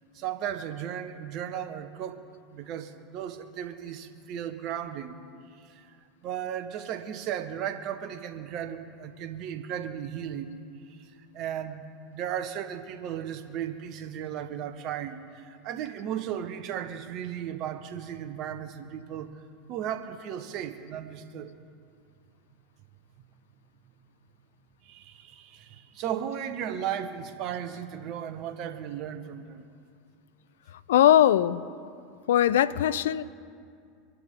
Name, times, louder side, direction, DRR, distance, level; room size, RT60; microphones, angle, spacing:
voice 1, 0.1-2.2 2.5-5.2 5.6-5.9 6.2-10.6 10.9-11.1 11.3-19.3 19.7-21.5 24.8-29.6, right 9 dB, 50° right, 9 dB, 1.3 m, -35 dB
voice 2, 30.9-31.6 32.3-33.2, left 11 dB, 75° left, 17 dB, 0.5 m, -20 dB
24.5 x 12.0 x 3.8 m, 2.3 s
hypercardioid pair, 85°, 0 cm